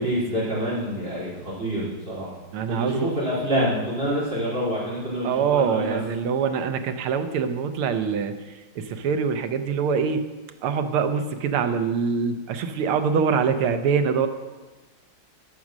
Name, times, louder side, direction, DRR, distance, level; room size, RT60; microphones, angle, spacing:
voice 1, 0.0-2.3 2.7-6.0, equal, 25° right, -8 dB, 4.8 m, -27 dB
voice 2, 2.5-3.1 5.2-10.2 10.6-14.3, right 6 dB, 80° right, 8 dB, 1.7 m, -24 dB
13.5 x 6.3 x 6.1 m, 1.2 s
omnidirectional pair, 2.4 m